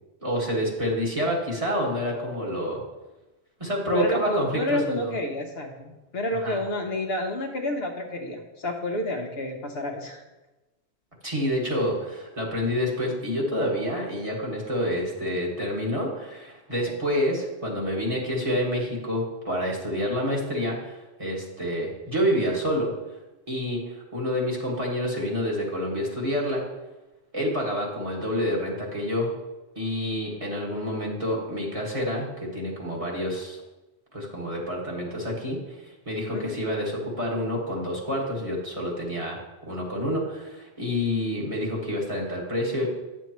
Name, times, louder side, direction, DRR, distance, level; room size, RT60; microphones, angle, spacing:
voice 1, 0.2-2.8 3.6-5.1 6.4-6.6 11.2-22.9 23.5-26.6 27.3-29.3 29.8-33.6 34.1-39.4 39.7-42.9, equal, 30° right, -4 dB, 1.8 m, -28 dB
voice 2, 3.9-10.2 16.9-17.0 36.3-36.5, left 1 dB, 60° left, 3 dB, 1.0 m, -30 dB
9.5 x 7.2 x 3.0 m, 1.1 s
omnidirectional pair, 1.2 m